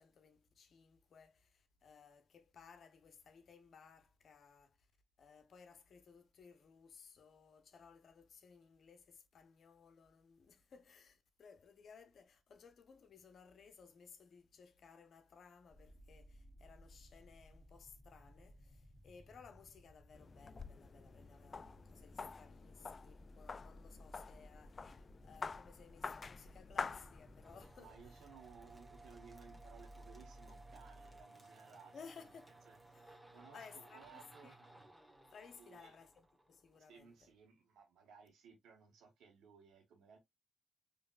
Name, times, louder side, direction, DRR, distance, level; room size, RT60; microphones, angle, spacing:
voice 1, 0.0-4.9 5.2-28.3 28.7-28.8 31.9-32.6 32.9-33.2 33.5-34.6 35.3-37.3, left 5 dB, 65° left, 0.9 m, -60 dB
Underwater ambience, 15.7-31.2, equal, 25° left, 1.4 m, -60 dB
sound 1, 20.1-27.7, left 4 dB, 45° left, 0.3 m, -48 dB
sound 2, 27.4-36.9, right 2 dB, 10° right, 1.5 m, -60 dB
voice 2, 27.8-32.0 32.7-32.8 33.3-34.7 35.6-35.9 36.9-40.2, right 6 dB, 75° right, 1.6 m, -60 dB
4.9 x 3.2 x 2.4 m
hypercardioid pair, 45°, 0 cm